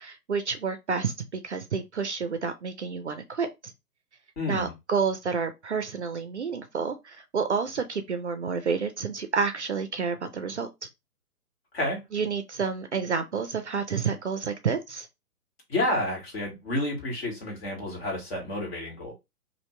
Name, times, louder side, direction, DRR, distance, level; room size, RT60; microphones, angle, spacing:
voice 1, 0.0-3.7 4.5-10.7 12.1-15.1, right 5 dB, 50° right, 0.5 m, -29 dB
voice 2, 4.4-4.7 11.7-12.0 15.7-19.1, left 1 dB, 40° left, 1.8 m, -30 dB
2.7 x 2.6 x 3.1 m
figure-of-eight pair, 130°, 46 cm